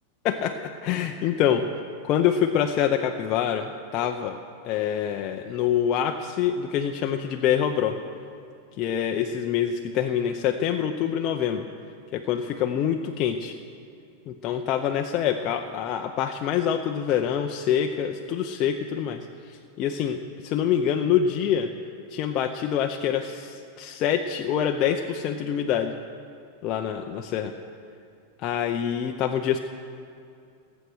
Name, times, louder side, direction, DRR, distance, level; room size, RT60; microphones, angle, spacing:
voice 1, 0.2-1.6 2.0-3.7 3.9-4.4 4.6-7.9 8.8-11.7 12.1-13.5 14.3-19.3 19.8-21.7 22.1-25.9 26.6-27.5 28.4-29.6, left 9 dB, 35° left, 4 dB, 0.7 m, -25 dB
17.0 x 8.2 x 6.4 m, 2.5 s
supercardioid pair, 145°, 0 cm